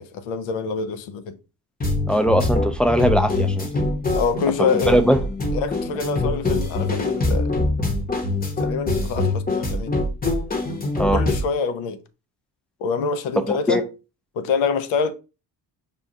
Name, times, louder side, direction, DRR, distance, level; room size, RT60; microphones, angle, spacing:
voice 1, 0.0-1.4 4.2-5.0 5.5-7.6 8.6-9.9 11.1-12.0 12.8-13.8 14.4-15.1, left 5 dB, 90° left, 0.5 m, -25 dB
sound 1, 1.8-11.4, left 2 dB, 20° left, 0.8 m, -24 dB
voice 2, 2.1-3.7 4.9-5.2 11.0-11.2 13.7-13.8, equal, ahead, 0.3 m, -19 dB
5.1 x 2.3 x 2.6 m
supercardioid pair, 65°, 45 cm